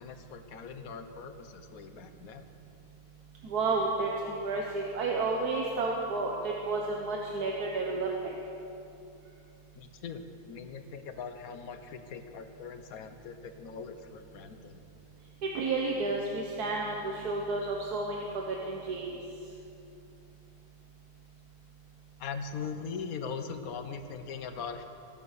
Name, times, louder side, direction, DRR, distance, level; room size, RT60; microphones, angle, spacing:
voice 1, 0.0-2.5 9.7-14.8 22.2-24.8, left 5 dB, 70° left, 8 dB, 1.3 m, -41 dB
voice 2, 3.4-8.3 15.4-19.1, right 3 dB, 90° right, -1 dB, 1.6 m, -31 dB
16.0 x 9.1 x 6.6 m, 2.8 s
omnidirectional pair, 1.6 m